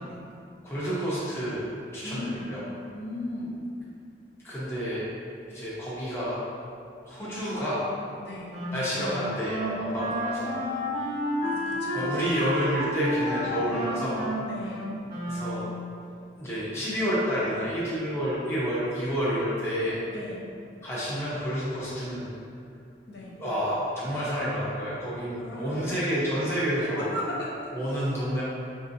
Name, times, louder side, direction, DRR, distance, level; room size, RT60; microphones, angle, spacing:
voice 1, 0.6-2.6 4.4-5.1 5.5-6.4 7.0-7.9 8.7-10.5 11.9-14.2 15.3-15.6 16.4-20.0 20.8-22.3 23.4-27.0 27.7-28.4, equal, 15° left, -9 dB, 0.7 m, -29 dB
voice 2, 2.0-2.5 2.9-3.6 8.2-8.5 10.5-11.1 11.4-12.2 13.4-13.7 14.4-14.9 20.1-20.4 23.1-23.4 25.4-25.9 26.7-27.7, left 1 dB, 60° left, -6 dB, 0.8 m, -37 dB
Wind instrument woodwind instrument, 8.5-15.9, equal, 35° right, 0.8 m, -31 dB
5.3 x 2.7 x 2.6 m, 2.4 s
head